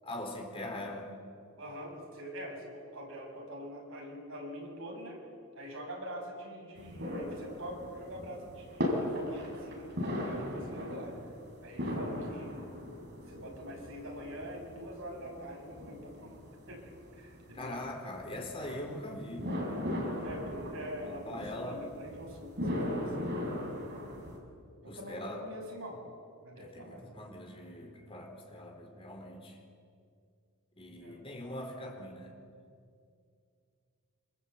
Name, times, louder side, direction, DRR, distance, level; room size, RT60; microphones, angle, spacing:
voice 1, 0.0-1.1 17.5-19.5 21.0-21.8 24.9-25.4 26.5-29.6 30.8-32.4, left 1 dB, 25° left, 2 dB, 3.8 m, -42 dB
voice 2, 1.6-5.2 5.6-11.2 11.6-12.7 13.3-16.4 16.7-17.9 20.2-23.7 24.8-26.0 26.4-27.1 30.9-31.2, equal, 70° right, 0 dB, 7.1 m, -44 dB
sound 1, 6.8-24.4, left 1 dB, 50° right, 5.8 m, -38 dB
26.5 x 26.5 x 8.4 m, 2.3 s
head